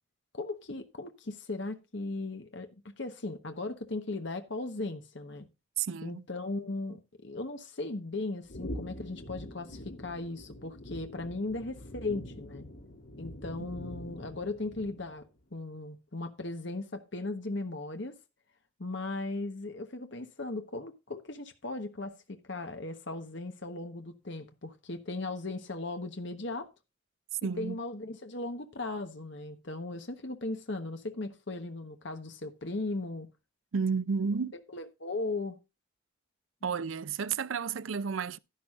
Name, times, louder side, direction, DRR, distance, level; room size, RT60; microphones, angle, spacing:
voice 1, 0.3-5.5 6.0-12.7 13.2-18.1 18.8-26.7 27.6-33.3 34.5-35.6, left 2 dB, 60° left, 1.2 m, -37 dB
voice 2, 5.8-6.2 27.4-27.8 33.7-34.5 36.6-38.4, right 5 dB, 70° right, 0.5 m, -31 dB
sound 1, 8.5-15.3, left 1 dB, 75° left, 2.7 m, -44 dB
11.5 x 11.0 x 2.5 m
head